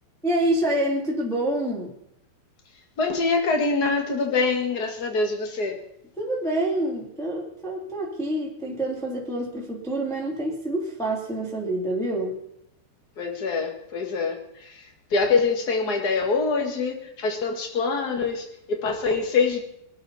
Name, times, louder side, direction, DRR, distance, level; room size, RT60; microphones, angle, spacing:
voice 1, 0.2-2.0 6.2-12.4, right 1 dB, ahead, -4 dB, 2.3 m, -27 dB
voice 2, 3.0-5.8 13.2-19.6, left 4 dB, 70° left, 3 dB, 0.9 m, -25 dB
23.0 x 13.0 x 4.2 m, 0.77 s
omnidirectional pair, 4.9 m